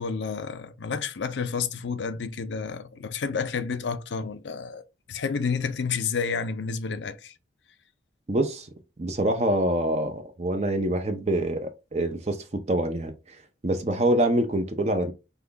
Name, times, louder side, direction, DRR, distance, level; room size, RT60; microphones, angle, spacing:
voice 1, 0.0-4.8 5.1-7.3, left 5 dB, 85° left, 0.5 m, -30 dB
voice 2, 8.3-8.7 9.0-13.1 13.6-15.1, right 1 dB, 35° right, 0.6 m, -25 dB
5.5 x 2.3 x 3.4 m
head